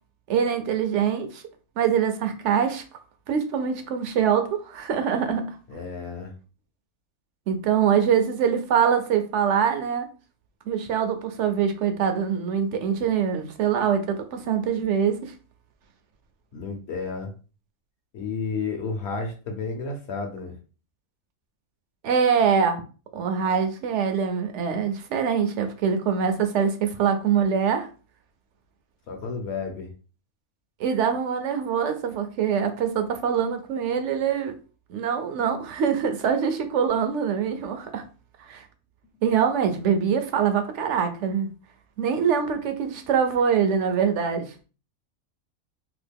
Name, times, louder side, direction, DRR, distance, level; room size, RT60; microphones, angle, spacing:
voice 1, 0.3-1.4 1.8-2.8 3.3-5.6 7.5-10.1 10.7-15.3 22.0-22.8 23.1-27.9 30.8-34.5 34.9-38.0 38.4-38.7 39.2-41.5 42.0-44.5, right 7 dB, 65° right, 0.8 m, -24 dB
voice 2, 5.7-6.3 16.5-17.3 18.1-20.5 29.1-29.9, left 4 dB, 55° left, 0.9 m, -31 dB
2.9 x 2.4 x 3.4 m
omnidirectional pair, 1.5 m